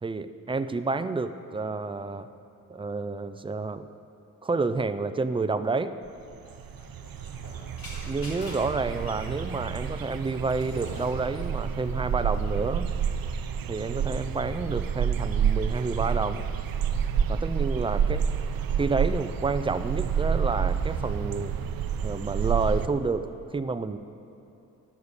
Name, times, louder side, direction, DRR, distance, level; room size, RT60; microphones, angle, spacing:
voice 1, 0.0-2.3 2.7-3.9 4.4-5.9 8.1-12.9 13.7-16.5 17.3-18.2 18.8-21.5 22.0-24.0, right 3 dB, 15° right, 11 dB, 0.3 m, -29 dB
sound 1, 6.1-6.2 6.3-22.9, right 7 dB, 85° right, 0.6 m, -29 dB
sound 2, 6.4-13.3, left 2 dB, 85° left, 2.3 m, -47 dB
12.0 x 9.7 x 6.7 m, 2.7 s
wide cardioid pair, 160°, 34 cm